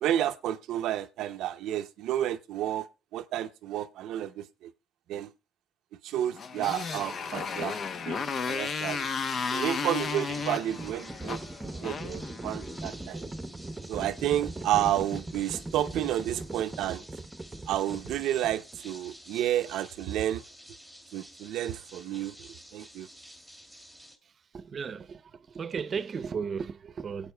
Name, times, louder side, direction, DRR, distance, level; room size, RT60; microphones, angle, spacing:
voice 1, 0.0-2.9 3.1-4.7 5.1-5.3 6.0-7.8 8.0-9.1 9.5-11.4 11.8-13.2 13.9-17.0 17.7-20.4 21.1-23.1, right 12 dB, 90° right, 0.5 m, -31 dB
Motorcycle, 6.3-12.8, left 5 dB, 55° left, 0.8 m, -34 dB
sound 1, 8.5-24.2, equal, 10° left, 2.3 m, -51 dB
Livestock farm animals working animals, 10.0-19.0, right 2 dB, 15° right, 0.9 m, -40 dB
voice 2, 24.5-25.2 25.5-27.3, right 6 dB, 50° right, 0.6 m, -34 dB
22.5 x 8.3 x 2.2 m
cardioid pair, 90°, 0 cm